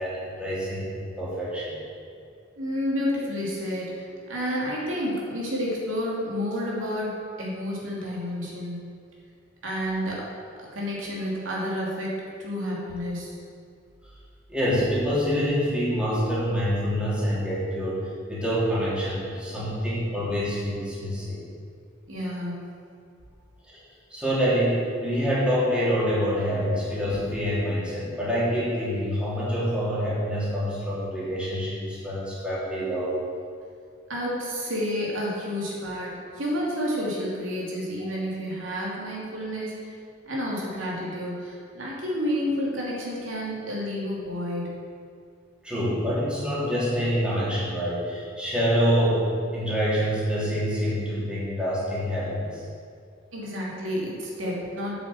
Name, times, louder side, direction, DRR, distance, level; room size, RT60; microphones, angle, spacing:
voice 1, 0.0-1.8 14.5-18.0 18.3-21.4 23.7-23.8 24.1-33.2 45.6-52.6, equal, 5° right, -9 dB, 3.2 m, -26 dB
voice 2, 2.6-7.1 7.4-8.8 9.6-10.3 10.6-13.3 22.1-22.6 34.1-39.7 40.2-44.8 53.3-54.9, equal, 85° right, -4 dB, 2.8 m, -30 dB
8.5 x 7.2 x 7.7 m, 2.3 s
head